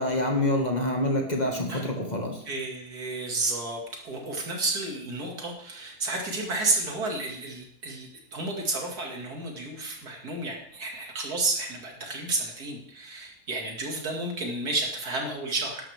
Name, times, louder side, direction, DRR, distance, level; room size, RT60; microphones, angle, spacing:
voice 1, 0.0-2.4, left 1 dB, 30° left, 1 dB, 1.9 m, -26 dB
voice 2, 2.5-15.9, right 2 dB, 80° right, 1 dB, 2.7 m, -31 dB
13.0 x 11.5 x 3.5 m, 0.65 s
omnidirectional pair, 1.6 m